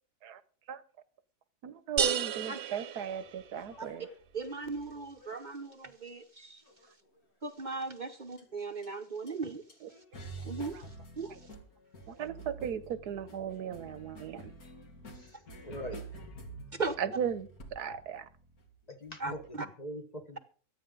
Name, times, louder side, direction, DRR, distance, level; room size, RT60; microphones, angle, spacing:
voice 1, 1.6-4.1 9.8-9.9 10.7-10.9 11.3-11.4 12.1-14.4 17.0-18.3 19.3-19.4, right 8 dB, 85° right, 1.4 m, -37 dB
sound 1, 2.0-3.8, right 8 dB, 65° right, 1.2 m, -33 dB
sound 2, 3.2-5.7 6.7-7.2 8.4-8.5 8.8-8.9 9.3-9.4 9.7-19.4, right 2 dB, 65° left, 2.9 m, -49 dB
voice 2, 4.3-6.6 7.4-9.6 10.4-10.8 11.2-11.5 16.7-17.0 19.2-19.7, right 4 dB, 35° right, 0.9 m, -38 dB
voice 3, 15.1-16.0 17.0-17.1 18.9-20.4, equal, 25° left, 1.3 m, -43 dB
24.0 x 9.0 x 3.8 m
omnidirectional pair, 1.7 m